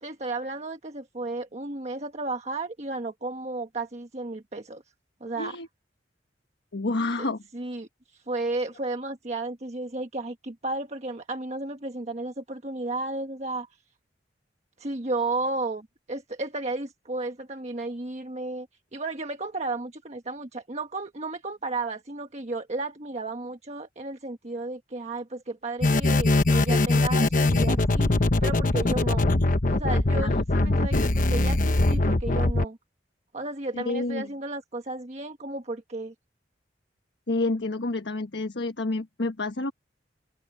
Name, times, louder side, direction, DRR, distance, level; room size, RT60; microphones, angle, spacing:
voice 1, 0.0-4.8 5.2-5.6 7.2-7.3 7.5-13.7 14.8-18.7 18.9-28.1 28.4-29.3 29.7-32.8 33.3-36.1, right 2 dB, 40° right, 1.4 m, -33 dB
voice 2, 6.7-7.4 30.2-30.8 33.7-34.3 37.3-39.7, left 2 dB, 75° left, 1.3 m, -29 dB
sound 1, 25.8-32.6, left 2 dB, 50° left, 1.1 m, -22 dB
open air
head